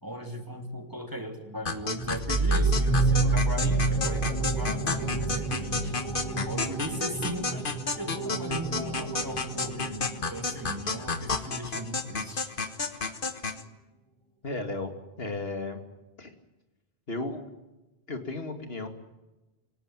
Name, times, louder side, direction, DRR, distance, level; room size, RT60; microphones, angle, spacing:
voice 1, 0.0-6.0 6.4-7.7 8.0-12.5, right 1 dB, 20° right, 6 dB, 2.9 m, -38 dB
sound 1, 1.7-13.6, left 4 dB, 55° left, 1.7 m, -32 dB
sound 2, 2.0-11.3, right 3 dB, 25° left, 7.6 m, -29 dB
voice 2, 14.4-14.9 15.2-15.8 16.2-16.3 17.1-17.4 18.1-18.9, left 2 dB, 70° left, 7 dB, 2.8 m, -34 dB
27.5 x 17.5 x 9.1 m, 1.1 s
omnidirectional pair, 1.0 m